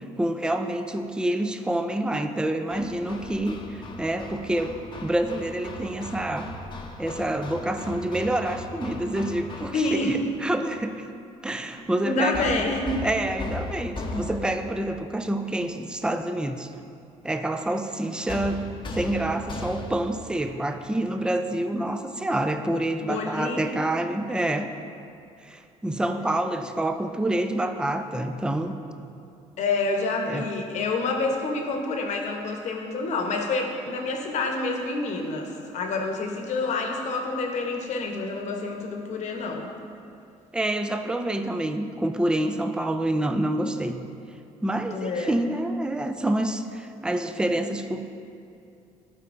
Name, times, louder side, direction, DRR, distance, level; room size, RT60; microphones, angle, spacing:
voice 1, 0.2-6.5 7.0-11.1 11.4-12.7 13.0-16.7 17.2-24.7 25.4-28.7 30.3-30.5 40.5-44.1 44.6-48.0, right 1 dB, 5° right, 7 dB, 0.4 m, -27 dB
Hammer, 2.7-10.1 12.3-14.8 18.3-20.2, left 2 dB, 40° left, 0.7 m, -38 dB
voice 2, 9.7-10.2 12.0-13.1 14.0-14.1 23.0-24.1 29.6-39.7 44.9-45.3, left 3 dB, 65° left, 3 dB, 0.9 m, -28 dB
12.0 x 4.4 x 2.5 m, 2.5 s
cardioid pair, 85°, 13 cm